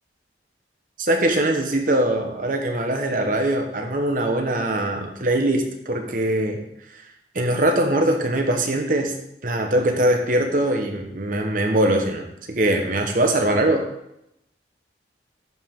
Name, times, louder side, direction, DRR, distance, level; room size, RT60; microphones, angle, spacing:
voice 1, 1.0-6.6 7.3-9.1 9.4-13.9, right 1 dB, 50° right, 4 dB, 1.1 m, -22 dB
11.5 x 4.9 x 3.8 m, 0.80 s
head